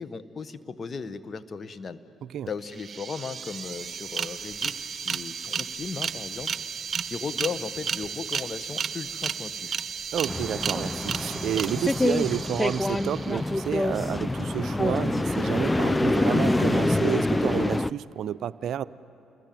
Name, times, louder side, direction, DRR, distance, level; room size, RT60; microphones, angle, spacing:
voice 1, 0.0-2.0 2.5-6.5 7.0-9.8, left 5 dB, 45° left, 12 dB, 1.3 m, -36 dB
sound 1, 2.5-2.6 2.7-13.6, right 6 dB, 45° right, 1.0 m, -33 dB
voice 2, 10.1-18.8, right 10 dB, 65° right, 15 dB, 0.5 m, -30 dB
sound 2, 10.3-17.9, left 2 dB, 15° left, 0.5 m, -26 dB
29.0 x 20.5 x 9.2 m, 2.9 s
hypercardioid pair, 55°, 0 cm